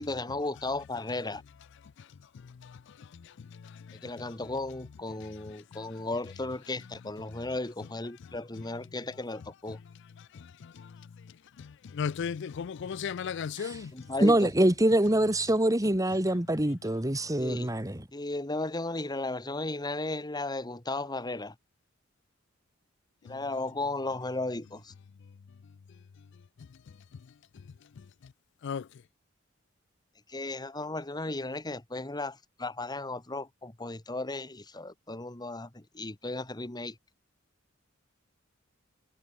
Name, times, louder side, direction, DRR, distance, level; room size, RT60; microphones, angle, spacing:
voice 1, 0.0-1.4 4.0-9.8 13.9-14.5 17.4-17.7 18.1-21.5 23.2-24.9 30.3-37.0, left 2 dB, 20° left, 1.5 m, -35 dB
voice 2, 12.0-13.9 28.6-28.8, left 6 dB, 65° left, 0.4 m, -33 dB
voice 3, 14.2-18.0, right 1 dB, 15° right, 2.1 m, -25 dB
head